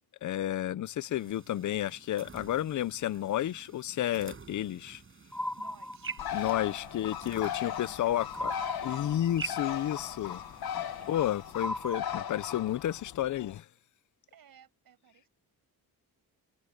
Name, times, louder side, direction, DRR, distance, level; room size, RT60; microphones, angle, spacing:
voice 1, 0.2-5.0 6.3-8.5 8.8-10.4 11.1-13.7, left 12 dB, 50° left, 0.6 m, -31 dB
sound 1, 1.1-11.7, right 5 dB, 35° right, 7.5 m, -48 dB
sound 2, 5.3-6.6 8.3-9.6 11.6-12.8, left 1 dB, 5° left, 0.4 m, -38 dB
voice 2, 5.6-6.2 6.6-7.1 7.6-9.1 11.0-11.3 14.3-15.3, right 9 dB, 65° right, 7.5 m, -57 dB
Bird, 6.2-13.6, left 10 dB, 70° left, 1.5 m, -38 dB
wide cardioid pair, 150°, 38 cm